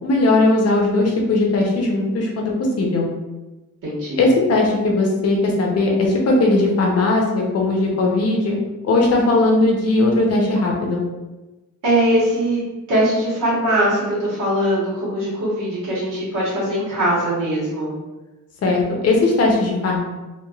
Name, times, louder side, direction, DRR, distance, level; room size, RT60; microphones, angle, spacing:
voice 1, 0.0-2.5 2.8-3.1 4.2-8.6 8.8-11.0 18.6-20.0, left 2 dB, 50° left, -1 dB, 0.7 m, -18 dB
voice 2, 3.8-4.3 11.8-12.6 12.9-17.9, right 1 dB, 85° right, -9 dB, 1.3 m, -21 dB
3.1 x 2.3 x 2.3 m, 1.1 s
wide cardioid pair, 125°, 32 cm